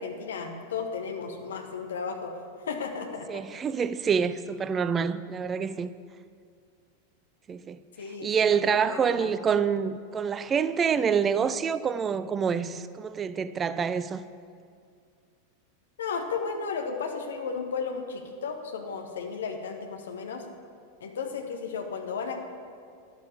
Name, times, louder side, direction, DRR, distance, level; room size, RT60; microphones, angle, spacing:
voice 1, 0.0-2.3 2.7-3.4 8.0-9.3 16.0-20.4 21.0-22.4, left 5 dB, 65° left, 1.6 m, -34 dB
voice 2, 3.3-5.9 7.5-7.8 8.2-14.2, right 6 dB, 20° right, 0.4 m, -27 dB
11.5 x 11.5 x 7.2 m
figure-of-eight pair, 90°, 0 cm